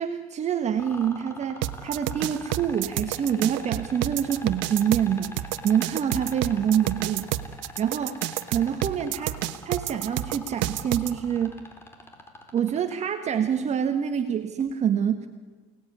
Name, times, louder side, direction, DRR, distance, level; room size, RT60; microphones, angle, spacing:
voice 1, 0.0-5.4 5.6-7.3 7.8-11.6 12.5-15.3, right 8 dB, 35° right, 7 dB, 1.6 m, -26 dB
sound 1, 0.8-12.9 14.6-14.7, left 1 dB, 10° left, 4.1 m, -42 dB
sound 2, 1.6-11.1, right 15 dB, 70° right, 1.2 m, -29 dB
28.5 x 19.0 x 9.7 m, 1.4 s
cardioid pair, 125°, 20 cm